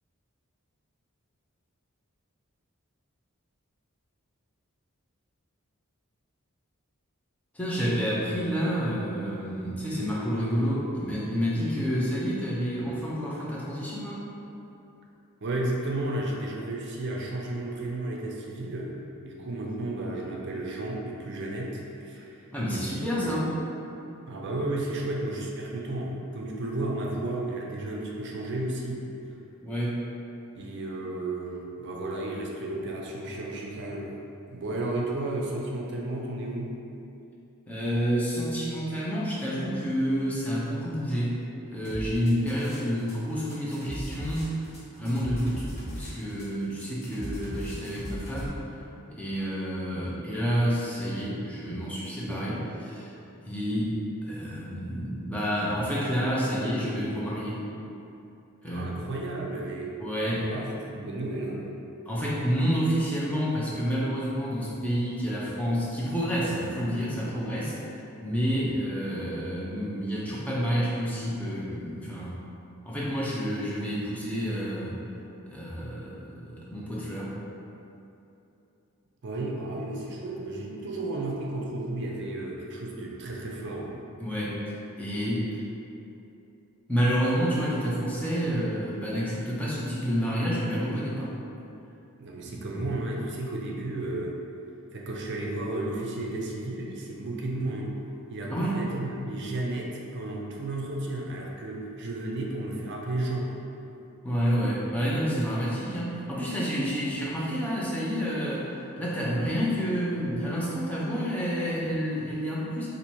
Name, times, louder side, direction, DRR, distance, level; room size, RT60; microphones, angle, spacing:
voice 1, 7.5-14.2 22.5-23.5 29.6-30.1 34.8-34.9 37.7-44.7 44.9-45.7 46.0-48.8 49.1-53.1 53.4-57.6 58.6-59.0 60.0-60.5 62.1-72.4 72.9-75.0 75.4-77.3 84.2-85.6 86.9-91.3 92.5-92.9 98.5-98.8 104.2-112.9, equal, 5° left, -7 dB, 0.6 m, -29 dB
voice 2, 15.4-18.9 19.2-23.5 24.2-29.1 30.5-34.2 34.5-36.7 58.7-59.9 60.4-61.7 79.2-84.0 92.2-94.3 94.9-98.0 98.3-103.5, right 2 dB, 50° right, -1 dB, 0.5 m, -33 dB
sound 1, 41.8-43.1 43.4-48.5, equal, 50° left, 1.1 m, -37 dB
2.8 x 2.6 x 4.3 m, 2.8 s
head